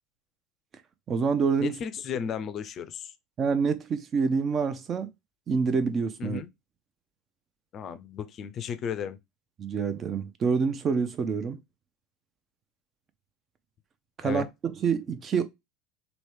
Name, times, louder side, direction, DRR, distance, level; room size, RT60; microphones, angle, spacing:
voice 1, 1.1-1.7 3.4-5.1 5.5-6.4 9.6-11.6 14.2-15.4, right 5 dB, 35° right, 0.6 m, -27 dB
voice 2, 1.6-3.1 6.2-6.5 7.7-9.2 14.2-14.5, left 8 dB, 40° left, 0.4 m, -34 dB
3.0 x 2.7 x 3.1 m
hypercardioid pair, 75°, 0 cm